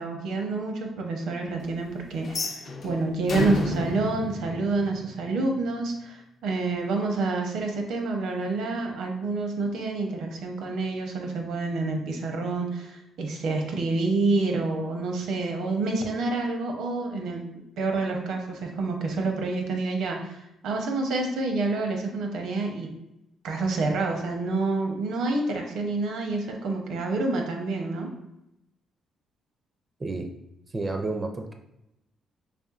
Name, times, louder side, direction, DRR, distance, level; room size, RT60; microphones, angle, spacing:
voice 1, 0.0-17.4 17.8-22.9 23.4-28.1, right 3 dB, 80° right, 3 dB, 0.7 m, -28 dB
sound 1, 2.2-5.3, left 2 dB, 55° left, 0.5 m, -31 dB
voice 2, 30.7-31.5, right 2 dB, 30° right, 4 dB, 0.4 m, -30 dB
4.2 x 3.4 x 2.4 m, 0.87 s
cardioid pair, 90°, 0 cm